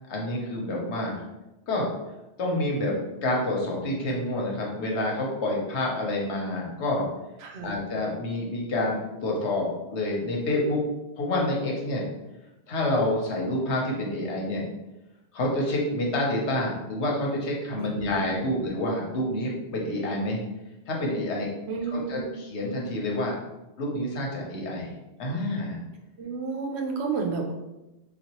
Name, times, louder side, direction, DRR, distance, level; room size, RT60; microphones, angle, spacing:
voice 1, 0.1-1.2 1.7-1.9 2.4-3.0 3.2-7.0 7.6-10.8 11.2-12.0 12.7-14.6 15.3-20.4 20.9-21.5 21.9-23.4 23.8-24.9 25.2-25.8, left 1 dB, 85° left, -2 dB, 1.1 m, -28 dB
voice 2, 7.4-7.7 17.8-18.5 21.7-22.3 26.2-27.5, right 4 dB, 75° right, 3 dB, 0.9 m, -31 dB
4.0 x 2.4 x 2.9 m, 0.98 s
omnidirectional pair, 1.1 m